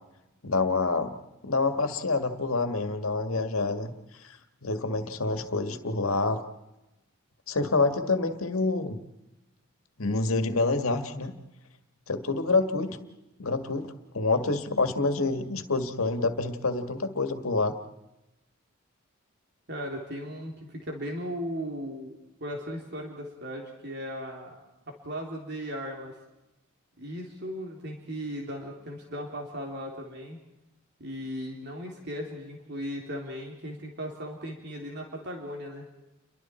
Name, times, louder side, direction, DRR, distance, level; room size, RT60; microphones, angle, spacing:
voice 1, 0.4-1.2 1.4-3.9 4.2-4.3 4.6-6.4 7.5-9.0 10.0-11.3 12.1-13.0 13.4-17.8, left 3 dB, 80° left, 7 dB, 1.9 m, -27 dB
voice 2, 19.7-24.6 24.9-26.1 27.0-30.4 31.0-35.9, equal, 55° right, 0 dB, 3.3 m, -37 dB
30.0 x 23.5 x 4.5 m, 0.93 s
head